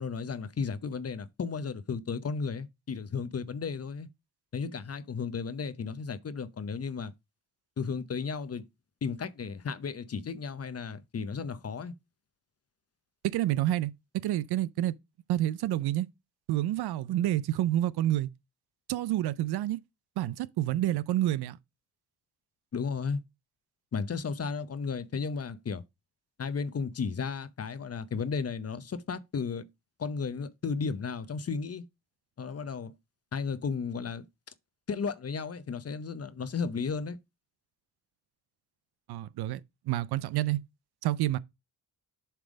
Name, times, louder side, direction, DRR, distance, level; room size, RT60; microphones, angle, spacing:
voice 1, 0.0-4.1 4.5-7.1 7.8-8.7 9.0-11.9 22.7-23.2 23.9-25.8 26.4-29.7 30.0-31.8 32.4-32.9 33.3-34.3 34.9-37.2, left 5 dB, 40° left, 0.7 m, -34 dB
voice 2, 13.2-14.9 15.3-16.1 16.5-18.3 18.9-19.8 20.2-21.6 39.1-39.6 39.9-40.6 41.0-41.4, right 14 dB, 75° right, 0.5 m, -28 dB
7.4 x 3.4 x 5.1 m
cardioid pair, 60°, 39 cm